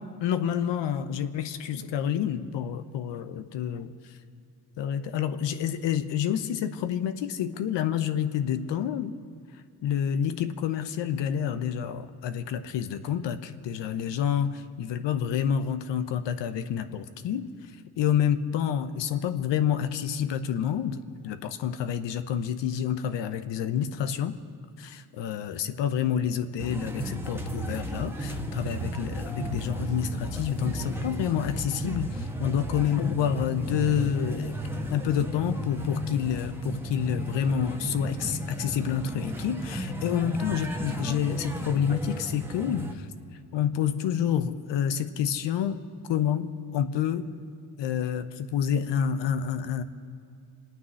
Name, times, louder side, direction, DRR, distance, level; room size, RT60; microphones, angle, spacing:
voice 1, 0.2-3.9 4.8-9.1 9.8-17.5 18.0-24.3 24.8-34.5 34.9-43.1 43.5-45.8 46.1-47.2 47.8-49.8, left 9 dB, 75° left, 10 dB, 1.0 m, -28 dB
sound 1, 26.6-42.9, right 1 dB, 5° right, 1.6 m, -34 dB
24.5 x 9.3 x 6.3 m, 2.4 s
supercardioid pair, 70°, 43 cm